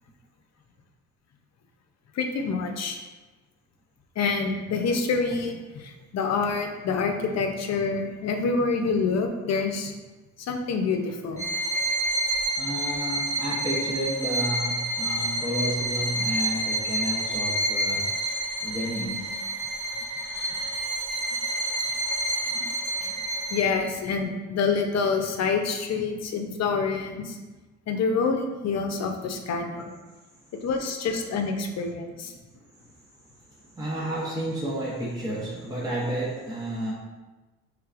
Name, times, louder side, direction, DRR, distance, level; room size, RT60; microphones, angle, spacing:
voice 1, 2.2-3.0 4.2-9.9 10.5-11.5 22.5-22.6 23.0-23.1 23.5-27.4 27.9-29.8 30.6-32.3, left 4 dB, 60° left, 4 dB, 0.6 m, -27 dB
Bowed string instrument, 11.4-23.9, right 1 dB, 10° left, 1.2 m, -28 dB
voice 2, 12.6-18.1 18.6-19.3 21.4-21.5 31.1-31.2 33.6-36.9, right 1 dB, 15° right, -6 dB, 0.9 m, -31 dB
4.5 x 3.4 x 2.5 m, 1.2 s
cardioid pair, 90°, 30 cm